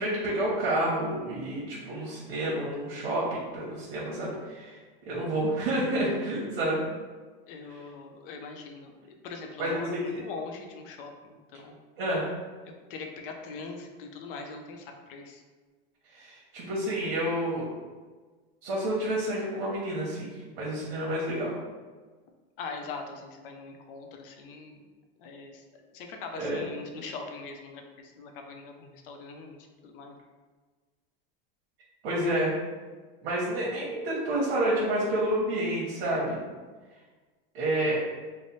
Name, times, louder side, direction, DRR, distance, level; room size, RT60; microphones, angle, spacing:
voice 1, 0.0-6.8 9.6-10.2 12.0-12.3 16.1-17.7 18.6-21.5 26.4-26.6 32.0-32.5 33.2-36.4 37.5-38.0, right 1 dB, 80° right, -5 dB, 1.0 m, -29 dB
voice 2, 7.5-11.8 12.9-15.4 22.6-24.9 25.2-25.6 25.9-29.6 29.8-30.2, left 4 dB, 65° left, 3 dB, 0.6 m, -42 dB
3.2 x 2.1 x 4.1 m, 1.4 s
supercardioid pair, 155°, 29 cm